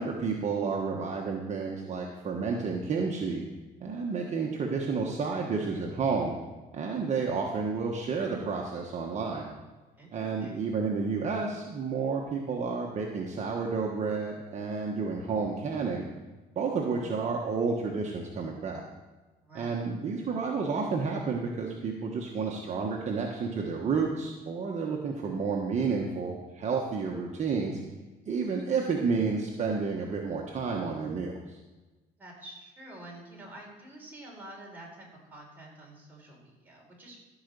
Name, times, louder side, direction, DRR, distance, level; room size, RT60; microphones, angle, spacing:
voice 1, 0.0-3.4 3.8-6.3 6.7-9.5 10.1-16.0 16.5-18.8 19.5-27.8 28.3-31.6, right 5 dB, 45° right, -1 dB, 1.3 m, -31 dB
voice 2, 9.9-10.6 19.4-19.8 32.2-37.3, right 1 dB, 10° right, -3 dB, 4.4 m, -48 dB
14.5 x 5.0 x 6.9 m, 1.2 s
cardioid pair, 110°, 17 cm